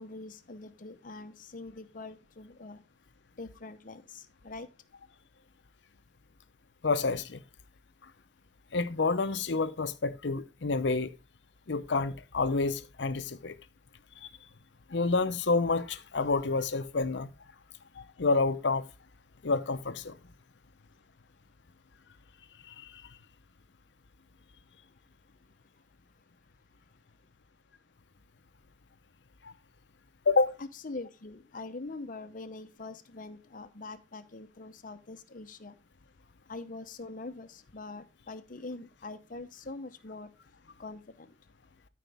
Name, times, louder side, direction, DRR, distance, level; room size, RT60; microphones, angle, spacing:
voice 1, 0.0-2.8 3.4-4.7 30.6-35.8 36.5-40.3 40.8-41.3, left 3 dB, 50° left, 0.9 m, -43 dB
voice 2, 6.8-7.4 8.7-11.1 11.7-13.6 14.2-14.3 14.9-17.3 18.0-18.8 19.4-20.2 22.7-22.9 29.4-29.5 30.3-30.5, left 3 dB, 85° left, 0.7 m, -28 dB
13.0 x 5.1 x 3.4 m
head